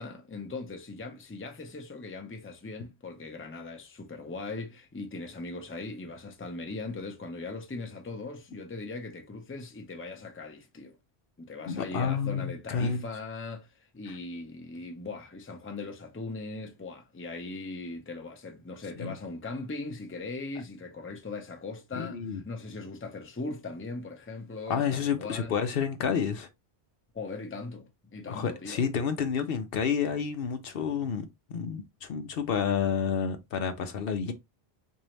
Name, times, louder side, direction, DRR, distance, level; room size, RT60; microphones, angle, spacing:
voice 1, 0.0-11.0 11.4-25.6 27.1-28.9, left 3 dB, 15° left, 0.6 m, -39 dB
voice 2, 11.7-13.0 19.0-19.1 22.0-22.4 24.7-26.5 28.3-34.3, left 6 dB, 65° left, 0.8 m, -30 dB
3.9 x 2.7 x 3.1 m
omnidirectional pair, 1.1 m